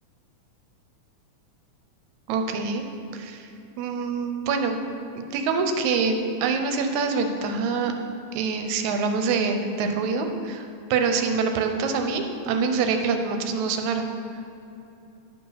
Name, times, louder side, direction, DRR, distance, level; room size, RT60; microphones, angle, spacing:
voice 1, 2.3-2.9 3.1-3.5 3.8-4.8 5.2-7.9 8.3-14.1, right 5 dB, 80° right, 5 dB, 2.0 m, -25 dB
10.5 x 4.9 x 5.7 m, 2.7 s
omnidirectional pair, 3.4 m